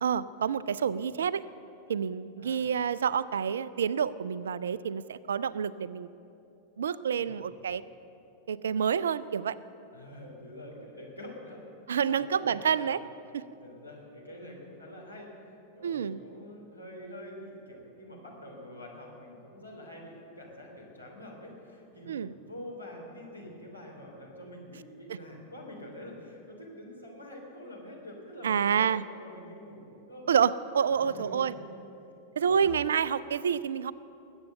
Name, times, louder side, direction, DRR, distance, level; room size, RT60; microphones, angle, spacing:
voice 1, 0.0-1.4 1.9-6.1 6.8-7.8 8.5-9.6 11.9-13.0 13.3-13.4 15.8-16.2 22.1-22.3 28.4-29.0 30.3-31.5 32.4-33.9, right 7 dB, 65° right, 18 dB, 0.4 m, -28 dB
voice 2, 7.2-7.5 9.9-11.6 12.0-12.9 13.5-15.3 15.7-30.3 30.9-31.6 32.0-32.7, left 1 dB, 90° left, -3 dB, 3.1 m, -46 dB
20.5 x 8.0 x 6.7 m, 2.9 s
figure-of-eight pair, 90°, 0 cm